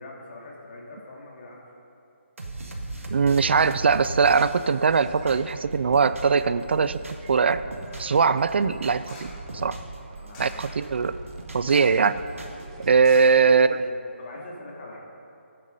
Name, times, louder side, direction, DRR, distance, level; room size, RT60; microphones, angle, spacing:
voice 1, 0.0-1.6 9.5-9.6 10.1-10.8 13.3-15.0, left 2 dB, 45° left, -2 dB, 2.4 m, -43 dB
sound 1, 2.4-6.4 6.7-8.2 8.5-9.9 10.3-11.7 12.0-13.0, right 2 dB, 80° right, 1.8 m, -38 dB
voice 2, 3.1-7.0 7.3-7.6 8.0-9.3 9.5-9.8 10.4-11.2 11.5-12.2 12.8-13.8, right 5 dB, 55° right, 14 dB, 0.3 m, -21 dB
sound 2, 4.9-13.9, right 4 dB, 25° right, 0.7 m, -46 dB
sound 3, 7.9-8.3 9.0-9.5 10.3-10.7 11.6-12.1 12.4-12.5 13.0-13.9 14.3-14.4, left 2 dB, 20° left, 1.6 m, -46 dB
11.0 x 8.5 x 5.4 m, 2.6 s
figure-of-eight pair, 160°, 7 cm